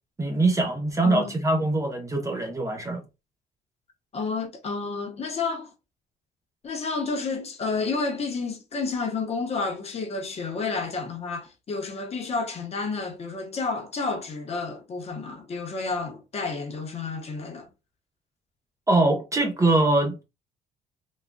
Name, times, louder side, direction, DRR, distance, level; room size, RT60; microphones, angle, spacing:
voice 1, 0.2-3.0 18.9-20.2, right 2 dB, 20° right, 0.8 m, -23 dB
voice 2, 4.1-5.7 6.6-17.7, left 4 dB, 40° left, 0.9 m, -30 dB
3.6 x 2.3 x 2.2 m
cardioid pair, 110°, 17 cm